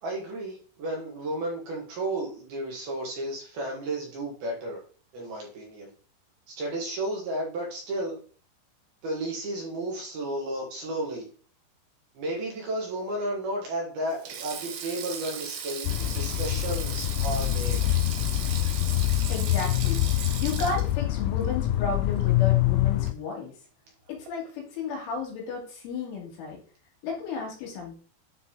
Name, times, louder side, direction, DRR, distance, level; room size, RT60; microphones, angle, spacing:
voice 1, 0.0-4.8 5.1-5.9 6.5-8.2 9.0-11.3 12.1-17.8, right 1 dB, 60° right, -2 dB, 3.3 m, -33 dB
Sink (filling or washing), 14.1-22.6 22.8-23.1 24.3-24.5, right 7 dB, 80° right, 2.1 m, -38 dB
sound 1, 15.9-23.1, left 15 dB, 90° left, 2.6 m, -25 dB
voice 2, 19.3-23.5 24.1-26.6 27.0-27.9, left 4 dB, 75° left, -1 dB, 4.6 m, -33 dB
9.9 x 4.0 x 3.8 m, 0.41 s
omnidirectional pair, 5.8 m